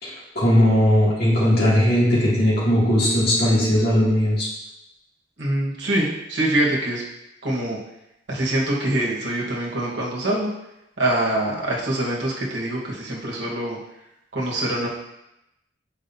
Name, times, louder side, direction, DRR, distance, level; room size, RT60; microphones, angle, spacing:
voice 1, 0.0-4.5, equal, 60° left, -7 dB, 2.3 m, -18 dB
voice 2, 5.4-7.0 7.4-7.8 8.3-10.5 11.0-13.8 14.3-14.9, right 1 dB, 65° right, -3 dB, 1.3 m, -24 dB
7.2 x 5.0 x 2.7 m, 0.88 s
head